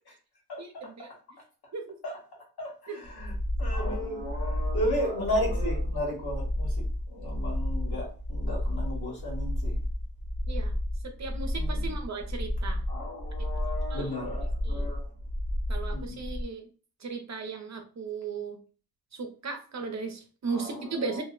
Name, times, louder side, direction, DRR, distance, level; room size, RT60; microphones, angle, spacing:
voice 1, 0.6-1.1 1.7-2.0 2.9-3.0 10.5-10.7 11.0-12.8 13.9-14.0 14.7-14.9 15.7-16.7 17.0-18.6 19.1-21.2, right 4 dB, 50° right, 0.6 m, -36 dB
voice 2, 2.6-6.8 7.1-9.8 11.5-11.9 12.9-15.1 15.9-16.2 20.5-21.2, equal, 85° left, 1.4 m, -34 dB
sound 1, 3.0-16.4, left 1 dB, 5° right, 0.5 m, -31 dB
2.7 x 2.1 x 3.6 m
wide cardioid pair, 110°, 36 cm